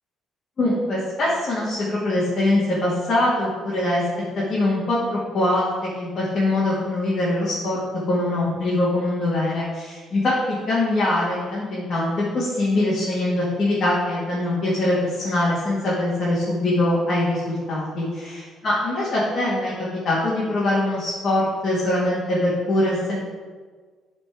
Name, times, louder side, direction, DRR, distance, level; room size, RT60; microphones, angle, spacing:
voice 1, 0.6-4.0 4.4-7.8 8.1-23.1, left 1 dB, 35° left, -8 dB, 2.2 m, -23 dB
10.0 x 4.4 x 4.7 m, 1.5 s
cardioid pair, 145°, 0 cm